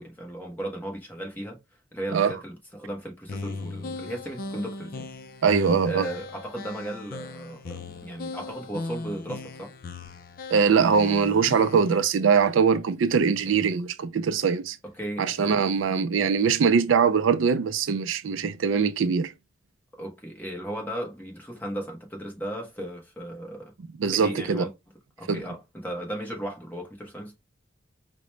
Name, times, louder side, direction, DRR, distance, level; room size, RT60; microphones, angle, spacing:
voice 1, 0.0-1.6 1.9-5.1 5.8-9.7 13.5-13.6 14.8-15.5 20.0-23.7 24.1-24.7 25.2-27.4, right 1 dB, 10° left, 0.9 m, -36 dB
sound 1, 3.3-12.0, left 3 dB, 45° left, 0.4 m, -38 dB
voice 2, 5.4-6.1 10.5-14.8 15.2-19.3 24.0-24.7 25.3-25.4, right 6 dB, 80° right, 0.4 m, -22 dB
4.9 x 2.2 x 3.0 m
head